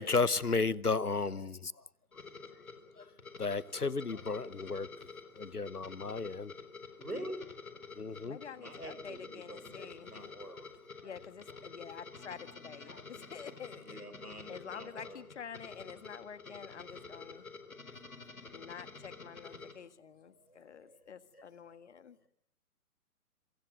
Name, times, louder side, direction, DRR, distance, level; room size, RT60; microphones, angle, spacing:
voice 1, 0.0-1.9 3.0-5.1 5.3-6.5 7.9-8.4 9.8-9.9 10.5-10.6 12.9-13.0 18.0-18.1, left 4 dB, 85° left, 1.2 m, -34 dB
sound 1, 2.1-19.7, left 4 dB, 70° left, 4.2 m, -49 dB
voice 2, 7.0-7.4 8.5-10.6 13.8-15.2 20.9-21.0 21.3-21.4, right 1 dB, 90° right, 6.2 m, -45 dB
voice 3, 8.2-10.1 11.0-14.0 14.5-17.8 18.5-22.2, left 7 dB, 50° left, 1.8 m, -48 dB
26.5 x 24.5 x 6.6 m
figure-of-eight pair, 130°, 44 cm